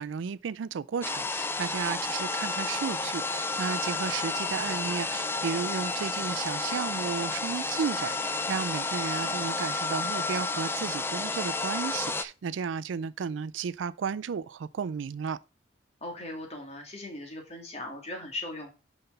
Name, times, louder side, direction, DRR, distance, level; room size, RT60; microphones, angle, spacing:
voice 1, 0.0-15.4, right 6 dB, 80° right, 0.4 m, -33 dB
sound 1, 1.0-12.2, left 3 dB, 10° left, 0.4 m, -31 dB
voice 2, 16.0-18.7, left 1 dB, 35° left, 2.3 m, -39 dB
5.9 x 5.3 x 5.4 m
head